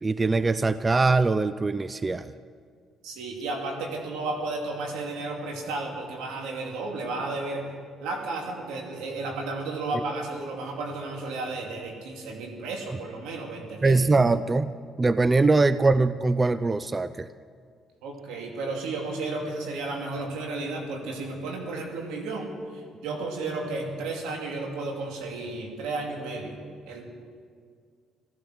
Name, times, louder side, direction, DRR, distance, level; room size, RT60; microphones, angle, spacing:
voice 1, 0.0-2.3 13.8-14.7 15.0-17.3, right 3 dB, 25° right, 14 dB, 0.4 m, -22 dB
voice 2, 3.0-7.6 8.0-14.0 18.0-26.6 26.9-27.1, right 3 dB, 85° right, 1 dB, 2.6 m, -33 dB
16.0 x 14.0 x 6.3 m, 2.1 s
supercardioid pair, 80°, 0 cm